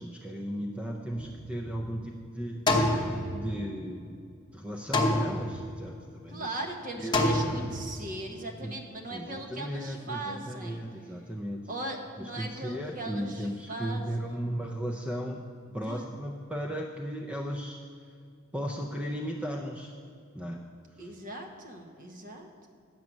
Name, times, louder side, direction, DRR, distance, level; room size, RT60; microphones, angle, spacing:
voice 1, 0.0-3.0 3.3-4.2 4.5-6.5 7.0-7.3 8.6-8.7 9.1-11.6 12.2-15.5 15.7-17.8 18.5-19.9 20.3-20.6 20.9-21.1, equal, 5° right, 1 dB, 0.4 m, -36 dB
sound 1, 1.1-2.0 2.7-3.9 4.9-5.9 7.1-8.1, left 1 dB, 20° left, 0.8 m, -28 dB
voice 2, 6.3-10.8 11.7-14.5 15.8-16.1 21.0-22.7, right 2 dB, 40° right, 3 dB, 1.0 m, -39 dB
9.4 x 7.5 x 6.0 m, 2.3 s
head